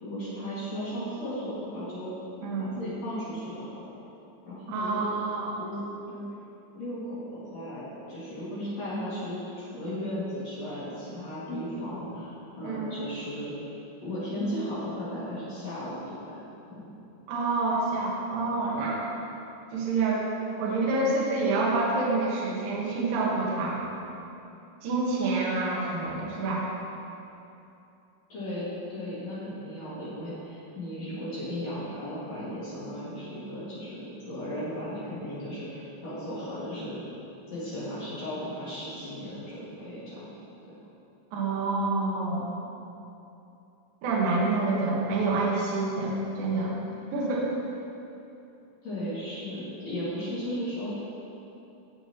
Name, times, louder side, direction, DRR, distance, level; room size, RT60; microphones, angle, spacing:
voice 1, 0.0-2.1 2.5-3.8 4.4-5.0 5.6-6.2 6.7-13.5 14.0-16.4 16.7-16.9 28.3-37.0 37.5-40.2 48.8-51.0, equal, 45° left, -10 dB, 2.3 m, -35 dB
voice 2, 2.4-2.8 4.7-5.6 12.6-13.0 17.3-19.0 19.7-20.3 20.6-23.8 24.8-26.6 41.3-42.5 44.0-46.8 47.1-47.5, right 3 dB, 60° right, -5 dB, 2.5 m, -27 dB
16.5 x 7.0 x 3.0 m, 2.8 s
omnidirectional pair, 6.0 m